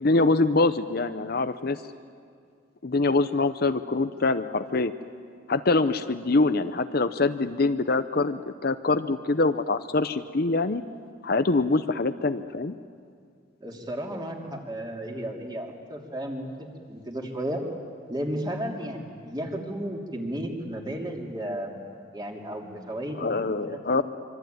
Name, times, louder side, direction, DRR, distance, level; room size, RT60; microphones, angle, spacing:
voice 1, 0.0-1.8 2.8-4.9 5.5-10.8 11.2-12.7 23.2-24.0, left 3 dB, 50° left, 10 dB, 0.7 m, -24 dB
voice 2, 13.6-17.6 18.1-21.8 22.1-24.0, right 1 dB, 20° right, 1 dB, 3.1 m, -34 dB
25.5 x 24.5 x 9.4 m, 2.2 s
head